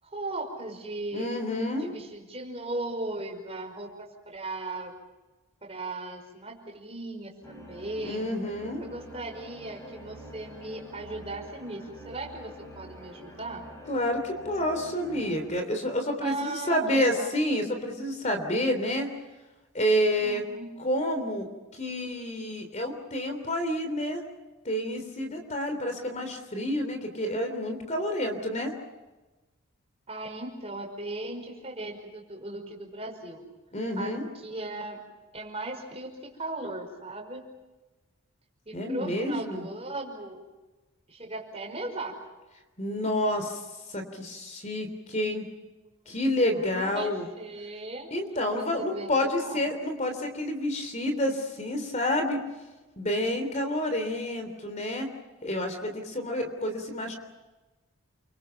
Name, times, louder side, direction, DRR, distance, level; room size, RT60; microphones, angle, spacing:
voice 1, 0.0-1.3 1.8-4.9 5.6-8.3 8.8-13.6 16.2-17.4 20.2-20.7 30.1-33.4 34.0-34.1 34.4-35.0 35.3-37.4 38.7-40.4 41.1-42.2 46.1-47.1 47.4-48.1 48.5-49.7, right 2 dB, 25° right, 1 dB, 5.6 m, -37 dB
voice 2, 1.1-1.9 8.0-8.8 13.9-19.1 19.7-20.4 20.8-24.2 24.6-28.7 33.7-34.3 38.7-39.6 42.8-43.6 43.9-45.4 46.1-47.3 48.1-52.4 53.0-55.1 55.4-57.1, left 1 dB, 30° left, 6 dB, 3.3 m, -29 dB
sound 1, 7.4-15.5, equal, 10° left, 5.4 m, -47 dB
29.5 x 24.5 x 5.9 m, 1.1 s
head